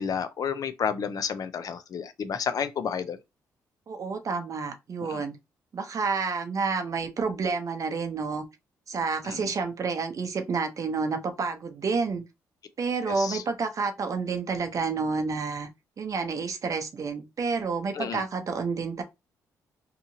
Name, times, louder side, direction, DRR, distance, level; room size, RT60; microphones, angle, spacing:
voice 1, 0.0-3.2 5.1-5.2 9.2-9.5 13.1-13.4 17.9-18.2, left 7 dB, 55° left, 0.5 m, -31 dB
voice 2, 3.9-5.4 5.7-8.4 8.9-12.2 12.8-15.7 16.0-19.0, right 4 dB, 50° right, 0.7 m, -29 dB
2.8 x 2.4 x 2.7 m
supercardioid pair, 65°, 7 cm